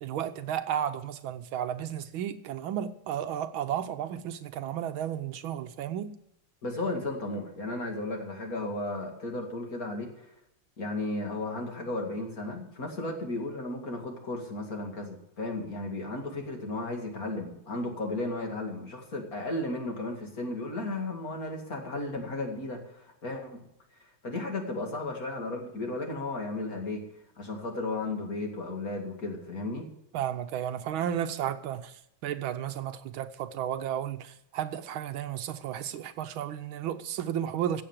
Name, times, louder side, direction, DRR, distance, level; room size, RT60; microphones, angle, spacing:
voice 1, 0.0-6.1 30.1-37.8, right 10 dB, 75° right, 1.5 m, -33 dB
voice 2, 6.6-10.3 10.8-23.5 24.0-27.0 27.4-29.9, left 2 dB, 40° left, 2.6 m, -34 dB
15.5 x 7.9 x 7.4 m
omnidirectional pair, 2.3 m